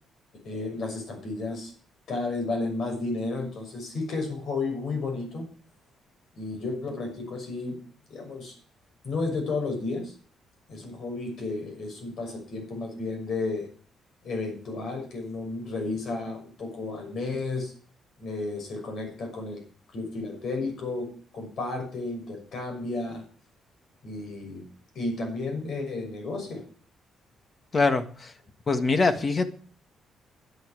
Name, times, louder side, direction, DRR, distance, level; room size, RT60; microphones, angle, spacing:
voice 1, 0.4-1.7 2.1-5.5 6.4-7.8 8.1-8.5 9.0-10.1 10.7-13.7 14.2-17.7 18.2-19.6 19.9-23.2 24.0-24.7 24.9-26.6, left 3 dB, 65° left, 3 dB, 6.4 m, -32 dB
voice 2, 27.7-28.3 28.7-29.5, left 3 dB, 35° left, 9 dB, 1.7 m, -23 dB
11.0 x 8.5 x 8.4 m, 0.44 s
cardioid pair, 90°, 0 cm